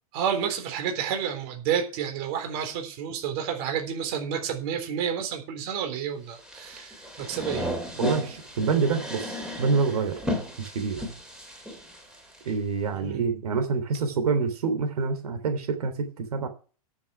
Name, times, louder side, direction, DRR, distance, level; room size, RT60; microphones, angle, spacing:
voice 1, 0.1-7.7 12.9-13.2, right 8 dB, 40° right, 5 dB, 3.7 m, -30 dB
sound 1, 6.4-12.5, equal, 5° right, 3.3 m, -34 dB
voice 2, 8.0-10.2 10.6-11.0 12.4-16.5, right 5 dB, 80° right, 7 dB, 3.1 m, -27 dB
12.5 x 7.2 x 6.0 m, 0.37 s
supercardioid pair, 155°, 19 cm